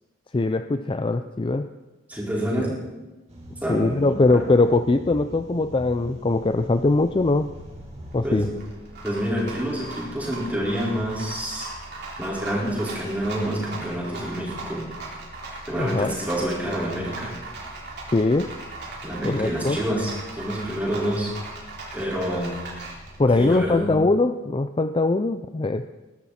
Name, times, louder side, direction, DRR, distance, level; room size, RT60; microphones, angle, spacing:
voice 1, 0.3-1.7 3.7-7.5 8.1-8.5 15.8-16.1 18.1-18.5 19.2-19.8 23.2-25.9, left 2 dB, 25° left, 10 dB, 0.4 m, -21 dB
voice 2, 2.1-2.8 3.6-4.4 8.2-8.6 9.0-11.7 12.2-14.9 15.7-17.3 19.0-21.3 21.9-22.6 23.3-23.9, equal, 10° right, -5 dB, 4.8 m, -27 dB
sound 1, 3.3-8.6, right 1 dB, 35° right, 5.1 m, -42 dB
Rattle, 5.3-23.9, right 2 dB, 50° right, 3.9 m, -39 dB
20.5 x 12.0 x 4.3 m, 1.1 s
head